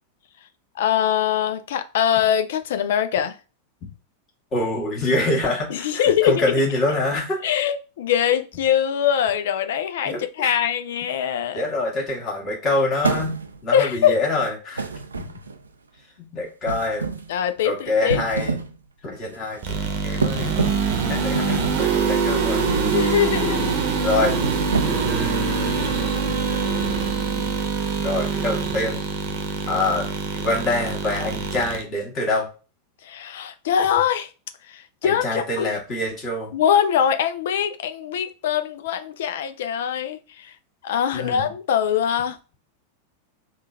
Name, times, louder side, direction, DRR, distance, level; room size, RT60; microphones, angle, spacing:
voice 1, 0.8-3.4 5.7-6.6 7.4-11.7 13.7-14.2 17.3-18.2 22.9-23.7 33.0-34.3 34.7-35.7 36.5-40.5 40.8-42.4, left 9 dB, 55° left, 0.5 m, -22 dB
voice 2, 4.5-7.4 10.0-10.5 11.5-14.9 15.2-15.3 16.2-17.1 17.6-18.6 19.0-20.7 21.1-22.8 24.0-24.4 24.8-27.5 28.0-29.0 29.7-32.5 35.0-36.6 41.1-41.5, left 2 dB, 30° left, 1.6 m, -26 dB
sound 1, 13.0-13.7 14.8-15.7 16.7-17.3 18.0-18.8 19.1-19.4 20.2-20.9 21.4-21.9 22.7-23.1 23.5-23.8 24.3-25.2, right 4 dB, 75° right, 0.4 m, -27 dB
sound 2, 19.6-31.8, right 5 dB, 45° right, 0.8 m, -24 dB
3.7 x 2.4 x 4.2 m
figure-of-eight pair, 90°, 0 cm